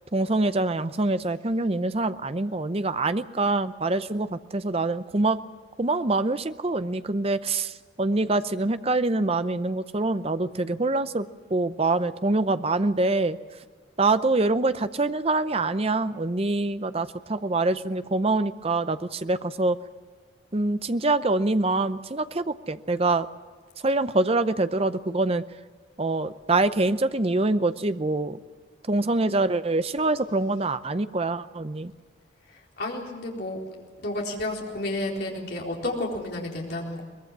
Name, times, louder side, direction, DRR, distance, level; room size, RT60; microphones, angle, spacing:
voice 1, 0.1-5.4 5.8-13.4 14.0-19.8 20.5-23.3 23.8-25.4 26.0-28.4 28.9-31.9, right 2 dB, 30° right, 12 dB, 0.7 m, -25 dB
voice 2, 32.5-33.6 34.0-37.0, left 1 dB, 55° left, -1 dB, 4.2 m, -31 dB
23.0 x 20.5 x 7.4 m, 1.5 s
head